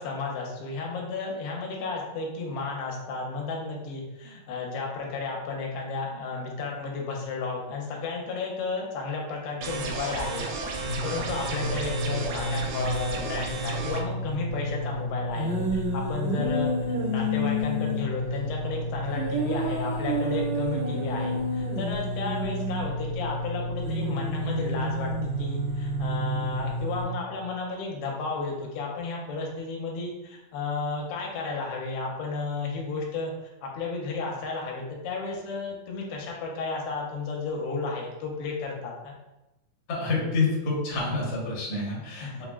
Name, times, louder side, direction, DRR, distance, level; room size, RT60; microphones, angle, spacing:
voice 1, 0.0-10.5 10.8-25.1 25.4-33.3 33.6-39.1 42.2-42.4, left 4 dB, 85° left, -1 dB, 2.5 m, -33 dB
sound 1, 9.6-14.0, right 3 dB, 80° right, 1.9 m, -33 dB
sound 2, 10.8-27.0, equal, 65° right, 1.1 m, -30 dB
voice 2, 39.9-42.4, left 3 dB, 65° left, -5 dB, 1.6 m, -28 dB
5.8 x 2.0 x 2.3 m, 1.0 s
omnidirectional pair, 4.2 m